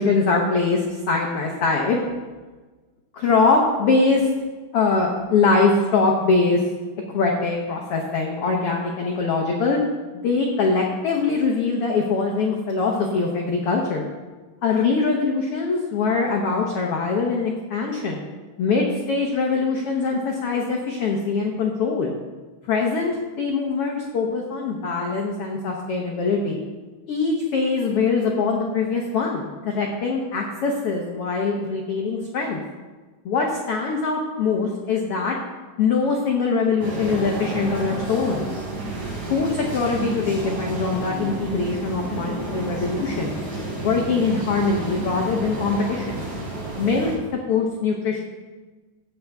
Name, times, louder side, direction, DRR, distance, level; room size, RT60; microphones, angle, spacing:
voice 1, 0.0-2.0 3.1-4.3 4.7-6.6 7.1-9.8 10.2-14.1 14.6-18.2 18.6-22.1 22.7-26.6 27.1-32.6 33.2-35.4 35.8-38.5 39.3-43.4 43.8-46.2 46.8-47.1 47.5-48.2, left 4 dB, 75° left, 0 dB, 1.3 m, -22 dB
sound 1, 36.8-47.2, right 2 dB, 55° right, 4.8 m, -31 dB
13.5 x 8.5 x 3.5 m, 1.3 s
omnidirectional pair, 4.0 m